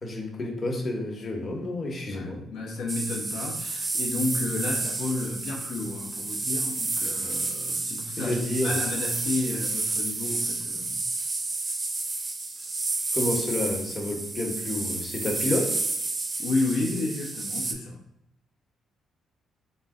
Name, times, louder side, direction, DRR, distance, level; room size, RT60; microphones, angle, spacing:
voice 1, 0.0-2.4 8.2-8.8 13.1-15.8, left 1 dB, 35° left, 0 dB, 0.9 m, -29 dB
voice 2, 2.1-11.0 16.4-18.0, left 3 dB, 90° left, -3 dB, 0.8 m, -31 dB
sound 1, 2.9-17.7, right 3 dB, 30° right, 0.5 m, -30 dB
3.9 x 2.1 x 3.6 m, 0.83 s
cardioid pair, 90°, 0 cm